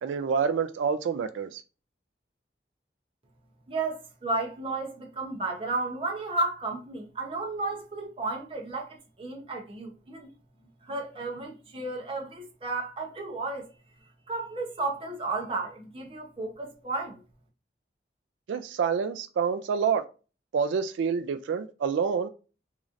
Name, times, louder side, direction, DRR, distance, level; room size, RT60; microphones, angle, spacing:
voice 1, 0.0-1.6 18.5-20.0 20.5-22.3, right 6 dB, 85° right, 0.3 m, -27 dB
voice 2, 3.7-10.3 10.8-13.7 14.3-17.2, right 3 dB, 30° right, 0.8 m, -33 dB
3.7 x 3.1 x 2.5 m
head